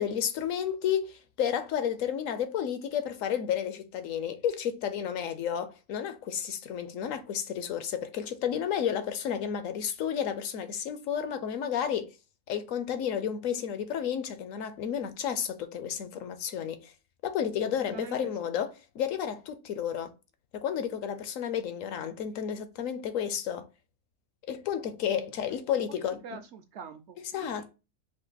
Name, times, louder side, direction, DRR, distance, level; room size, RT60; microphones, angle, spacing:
voice 1, 0.0-12.1 12.5-16.9 17.2-20.1 20.5-23.7 24.4-26.4 27.3-27.7, left 8 dB, 70° left, 1.0 m, -32 dB
voice 2, 25.5-27.7, right 6 dB, 65° right, 0.7 m, -46 dB
5.0 x 2.6 x 3.9 m
omnidirectional pair, 1.5 m